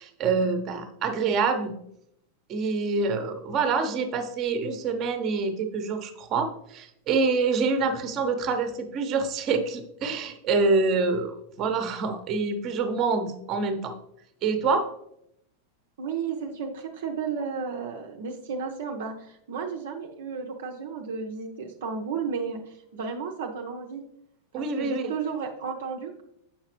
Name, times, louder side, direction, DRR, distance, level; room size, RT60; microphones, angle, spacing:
voice 1, 0.0-1.7 2.5-13.9 14.4-14.9 24.5-25.1, right 4 dB, 35° right, 7 dB, 0.8 m, -26 dB
voice 2, 16.0-24.0 24.5-26.2, right 5 dB, 65° right, 2 dB, 0.6 m, -33 dB
7.4 x 5.7 x 2.9 m, 0.75 s
figure-of-eight pair, 90°, 0 cm